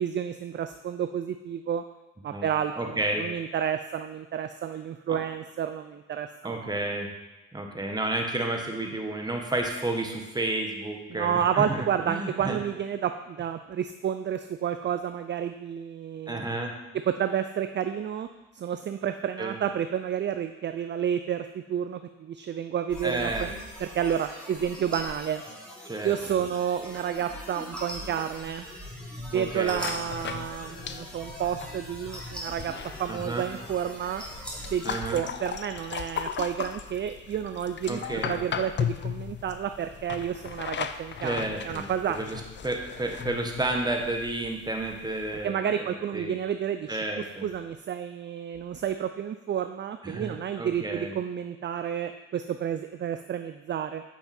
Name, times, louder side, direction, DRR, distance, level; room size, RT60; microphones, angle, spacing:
voice 1, 0.0-1.8 2.2-6.7 11.1-16.4 17.1-18.3 18.5-23.5 23.8-25.4 26.0-28.7 29.3-32.7 33.0-34.2 34.7-42.2 45.4-54.0, right 9 dB, 40° right, 9 dB, 0.4 m, -30 dB
voice 2, 2.8-3.3 5.1-5.2 6.4-7.1 7.5-12.6 16.3-16.7 19.4-19.6 23.0-23.5 25.8-26.1 29.3-29.8 33.1-33.5 34.8-35.2 37.9-38.4 41.2-46.3 46.9-47.5 50.0-51.2, right 2 dB, 15° right, 2 dB, 1.4 m, -31 dB
sound 1, 22.9-35.0, equal, 5° left, 2.8 m, -41 dB
sound 2, 29.8-45.5, left 8 dB, 40° left, 0.5 m, -37 dB
8.9 x 5.8 x 4.4 m, 1.0 s
cardioid pair, 90°, 30 cm